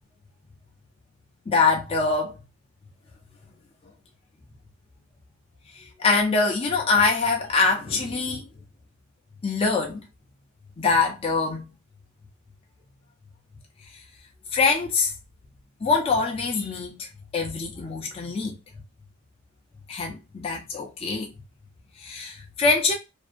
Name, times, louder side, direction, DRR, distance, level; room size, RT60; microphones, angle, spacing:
voice 1, 1.5-2.4 5.7-8.4 9.4-10.0 10.8-11.7 14.5-15.1 15.8-18.6 19.9-21.3 22.0-22.9, left 4 dB, 25° left, 0.4 m, -24 dB
2.5 x 2.2 x 2.4 m
head